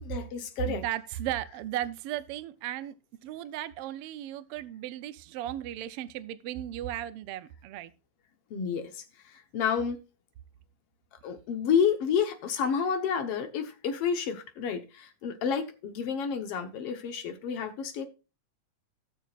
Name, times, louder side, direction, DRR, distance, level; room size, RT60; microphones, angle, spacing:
voice 1, 0.0-0.9 8.5-10.0 11.2-18.1, left 7 dB, 60° left, 1.8 m, -30 dB
voice 2, 0.6-2.9 3.2-7.9, right 12 dB, 85° right, 1.3 m, -35 dB
17.5 x 6.5 x 2.4 m
omnidirectional pair, 3.4 m